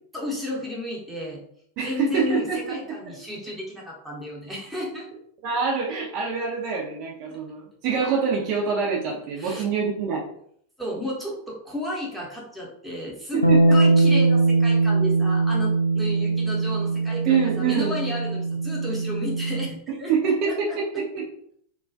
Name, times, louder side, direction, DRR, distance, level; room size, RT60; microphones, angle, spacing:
voice 1, 0.1-1.4 1.8-5.1 7.3-7.4 9.4-9.6 10.8-20.8, left 1 dB, 5° right, -4 dB, 0.8 m, -33 dB
voice 2, 1.8-2.7 3.1-3.2 5.4-10.2 13.3-13.7 17.3-18.0 20.1-21.2, right 6 dB, 45° right, -2 dB, 0.5 m, -25 dB
Bass guitar, 13.4-19.7, right 3 dB, 90° left, 0.3 m, -21 dB
2.2 x 2.2 x 2.5 m, 0.65 s
figure-of-eight pair, 90°, 0 cm